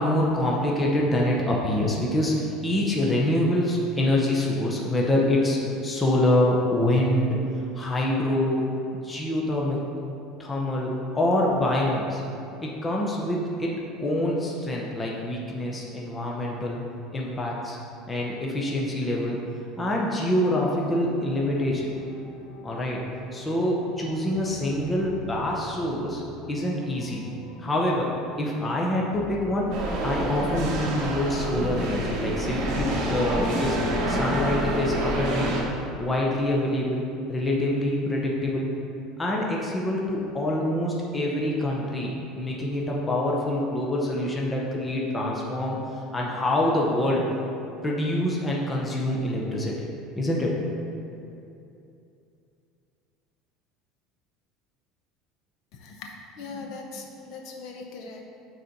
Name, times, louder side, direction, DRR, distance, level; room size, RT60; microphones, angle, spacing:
voice 1, 0.0-7.4 7.7-8.6 8.9-9.8 10.4-12.2 12.6-16.8 17.1-17.8 18.1-19.4 19.8-21.9 22.6-23.0 23.3-26.2 26.5-27.2 27.6-29.7 30.0-33.8 34.1-35.5 36.0-37.0 37.3-38.7 39.2-45.8 46.1-47.2 47.8-49.9 50.2-50.6, left 1 dB, 10° left, -3 dB, 0.6 m, -25 dB
sound 1, 21.3-31.6, left 1 dB, 5° right, 1.6 m, -44 dB
sound 2, 29.7-35.6, right 1 dB, 45° right, 1.2 m, -27 dB
voice 2, 55.7-58.3, left 4 dB, 45° left, 2 dB, 0.7 m, -40 dB
6.5 x 4.1 x 5.8 m, 2.7 s
cardioid pair, 175°, 0 cm